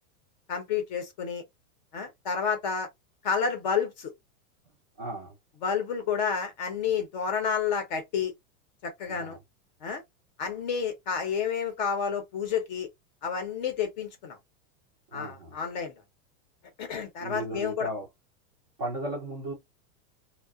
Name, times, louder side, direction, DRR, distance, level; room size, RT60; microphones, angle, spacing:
voice 1, 0.5-1.4 1.9-2.9 3.2-4.1 5.6-8.3 8.8-9.4 9.8-10.0 10.4-12.9 13.2-14.4 15.1-15.9 16.8-17.9, left 6 dB, 30° left, 0.5 m, -30 dB
voice 2, 5.0-5.3 9.0-9.4 15.1-15.6 17.2-18.1 18.8-19.5, right 1 dB, 25° right, 0.4 m, -35 dB
2.7 x 2.0 x 2.3 m
supercardioid pair, 175°, 43 cm